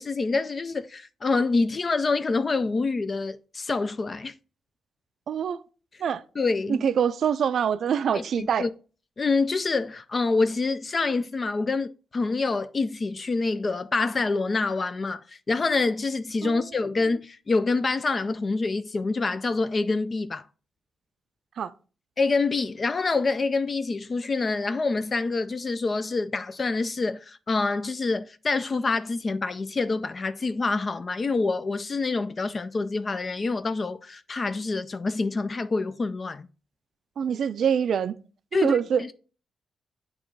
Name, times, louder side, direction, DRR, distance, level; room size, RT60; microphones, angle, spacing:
voice 1, 0.0-4.3 6.4-6.9 8.1-8.7 9.2-20.5 22.2-36.5 38.5-39.1, left 3 dB, 35° left, 0.3 m, -26 dB
voice 2, 5.3-5.6 6.0-6.2 6.7-8.6 16.4-16.6 21.6-21.7 37.2-38.1 38.6-39.0, right 7 dB, 70° right, 0.4 m, -24 dB
8.6 x 3.0 x 4.6 m
cardioid pair, 105°, 0 cm